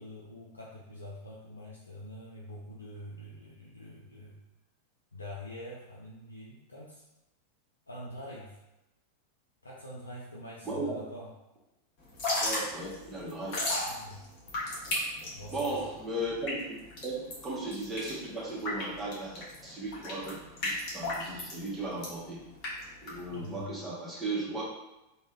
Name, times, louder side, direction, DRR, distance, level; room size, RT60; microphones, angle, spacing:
voice 1, 0.0-4.4 5.1-7.0 7.9-8.6 9.6-11.3 13.8-14.2 15.3-15.9 23.3-23.8, equal, 80° left, -5 dB, 0.5 m, -45 dB
voice 2, 10.6-11.0 12.4-13.6 15.5-16.6 17.0-22.4 23.0-24.6, right 2 dB, 10° right, -6 dB, 1.1 m, -36 dB
Drip / Trickle dribble, 12.0-23.6, left 2 dB, 40° left, 1.1 m, -35 dB
3.2 x 2.3 x 3.3 m, 0.97 s
figure-of-eight pair, 90°, 0 cm